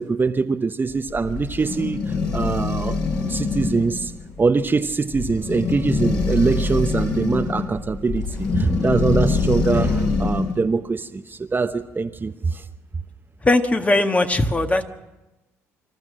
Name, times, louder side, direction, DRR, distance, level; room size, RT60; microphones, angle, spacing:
voice 1, 0.0-3.0 3.3-4.1 4.4-12.6, right 4 dB, 30° right, 8 dB, 1.0 m, -23 dB
sound 1, 0.9-10.6, left 4 dB, 55° left, 6.0 m, -24 dB
voice 2, 13.4-14.8, left 2 dB, 20° left, 6 dB, 1.7 m, -19 dB
26.5 x 13.5 x 7.5 m, 1.1 s
hypercardioid pair, 55°, 7 cm